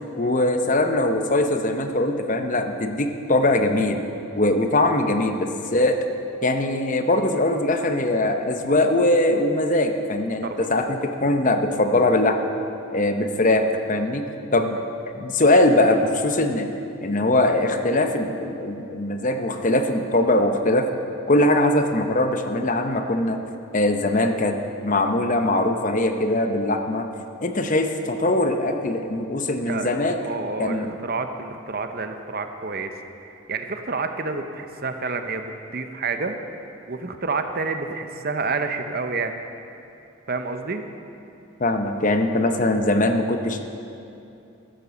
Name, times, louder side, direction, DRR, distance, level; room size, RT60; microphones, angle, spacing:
voice 1, 0.2-4.0 4.4-6.0 6.4-12.4 12.9-14.3 14.5-14.8 15.1-16.7 17.0-20.9 21.3-23.4 23.7-24.6 24.8-27.1 27.4-30.2 30.6-30.9 41.6-43.6, left 1 dB, 35° left, 6 dB, 0.8 m, -21 dB
voice 2, 29.7-36.4 36.9-39.3 40.3-40.9, right 4 dB, 45° right, 7 dB, 0.8 m, -29 dB
13.0 x 9.2 x 7.1 m, 2.7 s
head